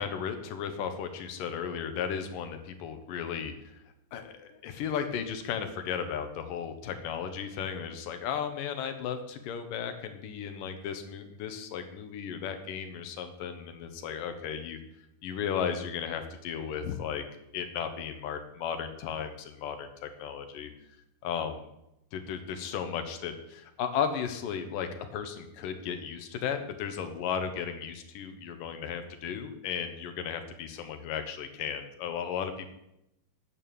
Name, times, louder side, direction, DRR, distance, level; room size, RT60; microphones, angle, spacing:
voice 1, 0.0-3.8 4.1-14.8 15.2-17.2 17.5-20.7 21.2-21.7 22.1-32.7, left 7 dB, 75° left, 7 dB, 2.8 m, -35 dB
9.8 x 9.2 x 6.9 m, 0.84 s
omnidirectional pair, 4.0 m